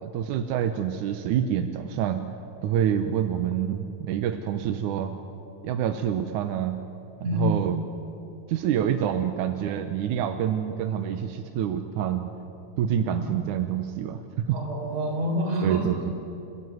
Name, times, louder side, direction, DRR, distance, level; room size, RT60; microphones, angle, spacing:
voice 1, 0.0-2.3 2.6-5.2 5.6-6.8 7.3-7.8 8.5-12.3 12.8-14.2 14.5-14.6 15.6-16.0, right 9 dB, 75° right, 7 dB, 2.0 m, -27 dB
voice 2, 7.2-7.6 13.1-13.3 14.5-16.0, equal, 45° right, 0 dB, 5.4 m, -27 dB
29.5 x 15.0 x 9.5 m, 2.8 s
omnidirectional pair, 4.3 m